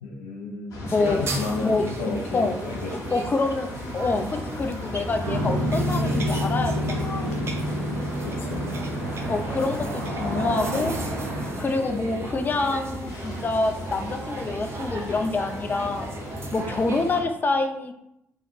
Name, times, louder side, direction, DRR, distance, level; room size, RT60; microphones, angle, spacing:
voice 1, 0.0-3.1 7.9-8.7 16.6-16.8, left 3 dB, 85° left, -1 dB, 0.5 m, -33 dB
sound 1, 0.7-17.3, left 1 dB, 55° left, 0.8 m, -36 dB
voice 2, 0.9-1.2 1.6-2.5 3.1-7.3 9.3-10.9 11.6-16.1 16.5-17.9, left 3 dB, 30° left, 6 dB, 0.4 m, -26 dB
sound 2, 0.9-17.2, right 2 dB, 40° right, 0.6 m, -38 dB
sound 3, 5.2-11.5, equal, 85° right, 0.5 m, -28 dB
2.9 x 2.4 x 4.1 m, 0.80 s
figure-of-eight pair, 40°, 7 cm